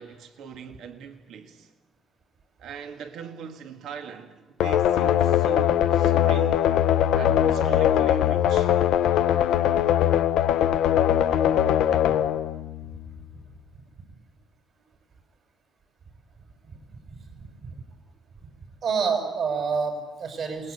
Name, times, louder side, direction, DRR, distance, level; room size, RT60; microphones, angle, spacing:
voice 1, 0.0-1.7 2.6-6.8 7.2-8.8, right 7 dB, 80° right, 1.8 m, -41 dB
sound 1, 4.6-13.3, left 10 dB, 85° left, 0.7 m, -21 dB
voice 2, 18.8-20.7, right 5 dB, 60° right, 6.5 m, -27 dB
28.5 x 20.0 x 8.3 m
cardioid pair, 90°, 0 cm